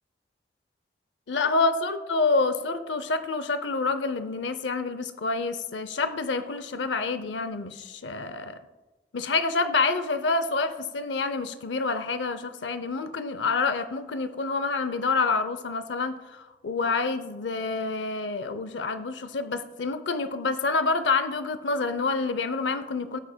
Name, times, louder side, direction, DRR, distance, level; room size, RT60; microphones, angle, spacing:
voice 1, 1.3-8.6 9.1-23.2, left 3 dB, 90° left, 11 dB, 0.6 m, -27 dB
17.5 x 8.5 x 2.2 m, 1.1 s
head